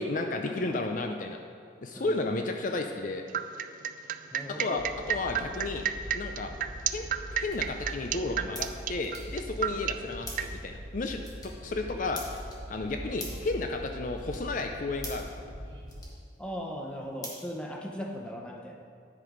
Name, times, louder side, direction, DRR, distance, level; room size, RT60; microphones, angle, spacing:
voice 1, 0.0-1.4 1.8-3.3 4.6-5.8 6.1-6.5 6.9-11.2 11.6-12.2 12.7-15.3, left 2 dB, 45° left, 4 dB, 0.5 m, -33 dB
Musical drop (at a bathroom), 3.3-10.5, right 10 dB, 45° right, 0.3 m, -30 dB
voice 2, 4.3-4.8 16.4-18.8, equal, 5° left, 0 dB, 0.8 m, -38 dB
Train, 4.8-16.0, equal, 80° right, 2.0 m, -42 dB
sound 1, 6.7-18.2, left 1 dB, 20° left, 1.6 m, -49 dB
10.5 x 6.0 x 5.0 m, 2.2 s
head